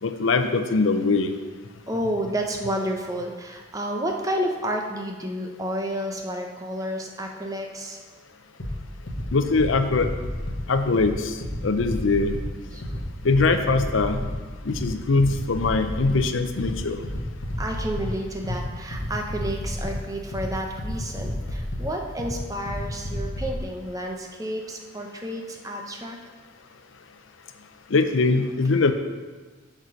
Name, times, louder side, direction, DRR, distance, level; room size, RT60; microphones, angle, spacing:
voice 1, 0.0-1.3 9.3-10.1 10.7-12.4 13.2-14.2 14.6-17.0 27.9-28.9, left 3 dB, 75° left, 8 dB, 0.6 m, -22 dB
voice 2, 1.9-8.0 12.7-12.8 17.6-26.2, right 1 dB, 15° right, 2 dB, 0.7 m, -30 dB
sound 1, 8.6-23.6, left 1 dB, 55° left, 1.4 m, -32 dB
6.6 x 6.1 x 5.2 m, 1.4 s
head